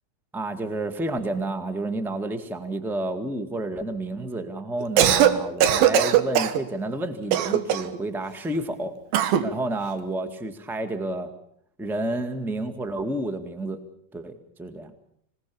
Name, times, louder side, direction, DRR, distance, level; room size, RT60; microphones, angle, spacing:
voice 1, 0.3-8.9 9.4-11.3 11.8-13.8 14.1-14.9, right 2 dB, ahead, 8 dB, 0.7 m, -30 dB
Cough, 4.8-5.3 5.6-6.6 7.3-8.0 9.1-9.5, right 10 dB, 85° right, 3.2 m, -19 dB
26.5 x 19.0 x 7.0 m, 0.70 s
omnidirectional pair, 4.0 m